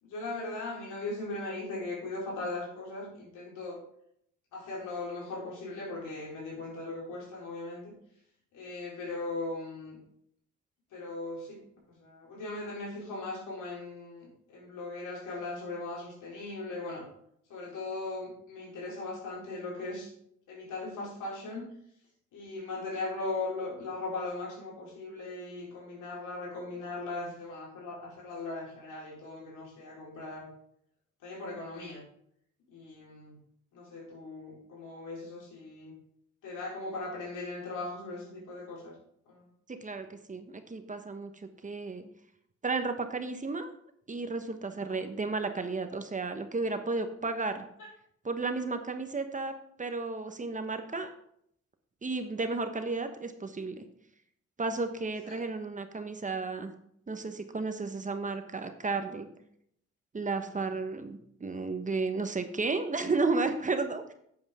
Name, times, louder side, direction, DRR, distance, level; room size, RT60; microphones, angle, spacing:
voice 1, 0.0-3.8 4.5-7.9 8.5-10.0 10.9-11.6 12.0-17.0 17.5-20.1 20.5-21.7 22.3-30.5 31.2-32.0 32.7-33.4 33.7-35.9 36.4-38.9 39.3-39.4 44.8-45.1 55.2-55.4, left 2 dB, 85° left, -3 dB, 4.3 m, -39 dB
voice 2, 39.7-41.3 41.6-42.0 42.6-43.7 44.1-47.6 48.2-51.1 52.0-53.8 54.6-56.7 57.1-59.3 60.1-64.1, right 3 dB, 25° right, 7 dB, 1.1 m, -33 dB
11.0 x 8.1 x 3.6 m, 0.71 s
cardioid pair, 90°, 30 cm